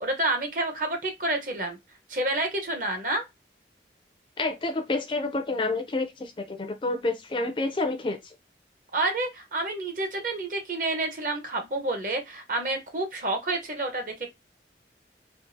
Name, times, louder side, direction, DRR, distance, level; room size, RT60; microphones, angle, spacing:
voice 1, 0.0-1.8 2.1-3.3 8.9-14.3, right 2 dB, 50° right, 0.9 m, -29 dB
voice 2, 4.4-8.3, left 2 dB, 30° left, 0.4 m, -29 dB
3.7 x 2.4 x 2.6 m
head